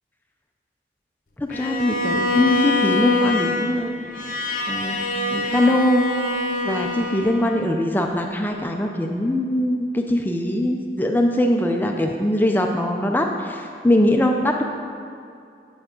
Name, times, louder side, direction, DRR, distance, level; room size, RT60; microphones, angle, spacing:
voice 1, 1.4-4.0 4.7-5.0 5.3-6.1 6.6-14.6, left 1 dB, 10° left, 3 dB, 0.4 m, -21 dB
Bowed string instrument, 1.5-7.7, left 3 dB, 50° left, 0.7 m, -25 dB
7.9 x 7.1 x 3.7 m, 2.4 s
head